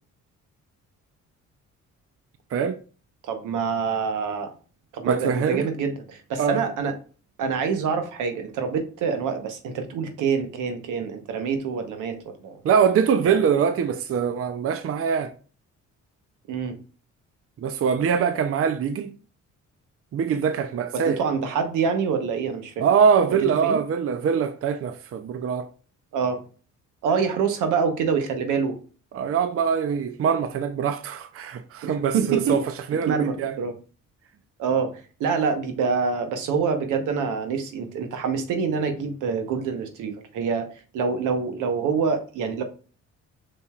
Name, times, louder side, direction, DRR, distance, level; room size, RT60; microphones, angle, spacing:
voice 1, 3.2-4.5 4.9-6.9 7.4-12.6 13.2-13.4 16.5-16.8 20.9-22.8 23.6-23.8 26.1-26.4 27.0-28.8 31.8-32.6 33.1-33.7 34.6-40.7 40.9-42.6, right 5 dB, 85° right, 1.0 m, -26 dB
voice 2, 5.1-5.7 6.4-6.6 12.6-15.3 17.6-19.1 20.1-21.2 22.8-25.7 29.1-32.6 32.9-33.5, right 7 dB, 50° right, 0.6 m, -23 dB
5.3 x 4.1 x 2.4 m
cardioid pair, 90°, 30 cm